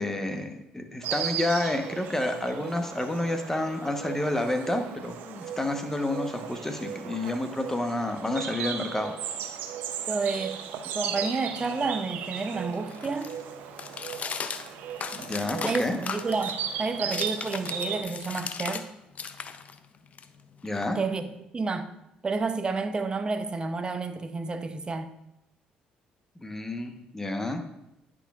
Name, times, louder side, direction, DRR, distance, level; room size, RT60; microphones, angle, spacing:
voice 1, 0.0-9.1 15.1-16.0 20.6-21.0 26.4-27.6, left 1 dB, 15° left, 1.0 m, -29 dB
Insect, 1.0-18.0, right 8 dB, 75° right, 0.6 m, -36 dB
voice 2, 10.1-10.6 10.9-13.4 15.7-18.9 20.9-21.9 22.2-25.1, right 4 dB, 30° right, 0.6 m, -30 dB
sound 1, 11.5-18.9 19.1-21.3, left 6 dB, 45° left, 0.5 m, -38 dB
9.8 x 6.1 x 2.4 m
supercardioid pair, 70°, 3 cm